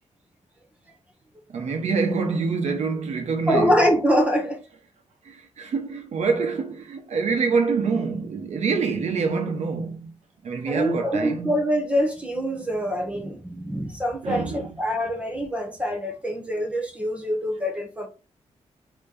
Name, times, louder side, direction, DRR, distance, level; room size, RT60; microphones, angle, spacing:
voice 1, 1.5-3.7 5.2-10.1 10.4-11.6 14.2-14.7, right 4 dB, 75° right, 1.1 m, -26 dB
voice 2, 3.5-4.6 10.6-18.1, equal, 10° right, 1.1 m, -24 dB
4.0 x 3.1 x 3.8 m
wide cardioid pair, 115°, 12 cm